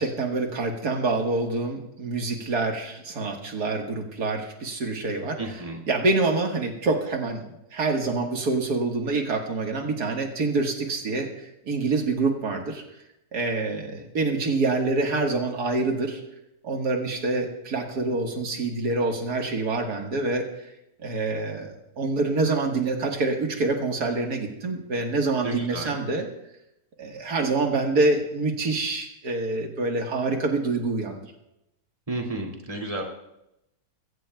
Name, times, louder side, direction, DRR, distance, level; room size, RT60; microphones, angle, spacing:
voice 1, 0.0-5.4 5.9-7.4 7.7-12.8 13.3-16.2 16.6-20.5 21.0-26.3 27.0-31.2, right 3 dB, 85° right, 2 dB, 2.1 m, -26 dB
voice 2, 5.4-5.8 25.4-26.0 32.1-33.0, right 2 dB, 20° right, 0 dB, 2.5 m, -32 dB
22.0 x 16.5 x 2.3 m, 0.86 s
omnidirectional pair, 1.6 m